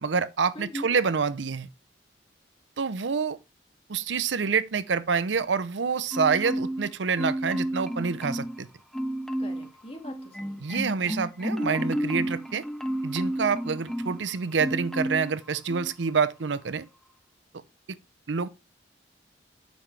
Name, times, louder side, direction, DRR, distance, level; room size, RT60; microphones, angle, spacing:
voice 1, 0.0-1.7 2.8-3.4 3.9-8.7 10.6-12.6 13.0-16.9 17.9-18.0 18.3-18.5, right 5 dB, 85° right, 0.6 m, -27 dB
voice 2, 0.5-0.9 9.4-10.7, left 1 dB, 30° left, 2.0 m, -40 dB
Marimba xylophone, 6.1-6.9 7.2-8.6 8.9-9.7 10.0-14.2 14.6-15.3 15.7-15.9, right 1 dB, ahead, 0.5 m, -31 dB
9.0 x 7.1 x 3.3 m
head